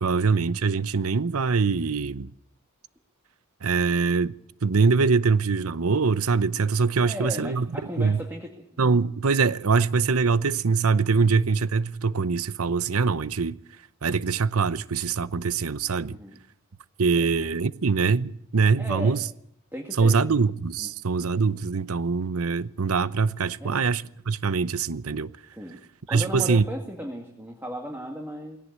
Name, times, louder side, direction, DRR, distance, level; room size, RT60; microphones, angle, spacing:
voice 1, 0.0-2.3 3.6-4.3 4.6-7.7 8.0-8.2 8.8-13.6 14.0-16.2 17.0-19.2 20.0-25.3 26.1-26.6, right 4 dB, 90° right, 0.8 m, -23 dB
voice 2, 7.0-8.7 16.1-16.4 17.1-17.3 18.8-19.3 19.7-20.3 20.8-20.9 23.6-23.8 25.5-25.8 26.1-28.6, equal, 10° right, 2.2 m, -36 dB
20.0 x 17.5 x 8.1 m
head